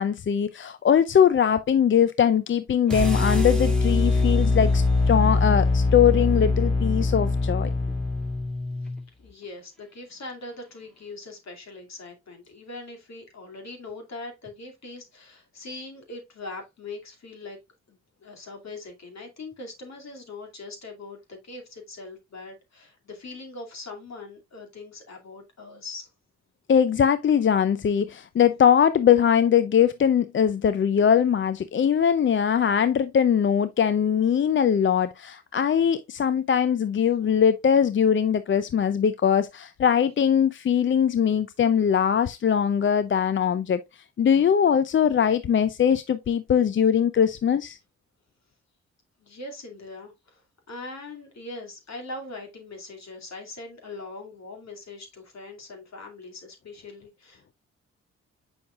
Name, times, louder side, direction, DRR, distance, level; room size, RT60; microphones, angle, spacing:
voice 1, 0.0-7.7 26.7-47.8, left 8 dB, 40° left, 0.5 m, -21 dB
sound 1, 2.9-9.0, left 3 dB, ahead, 2.1 m, -23 dB
voice 2, 9.2-17.6 17.9-26.1 49.2-50.4 50.7-57.5, left 2 dB, 60° left, 2.5 m, -41 dB
7.2 x 5.7 x 2.4 m
supercardioid pair, 55°, 31 cm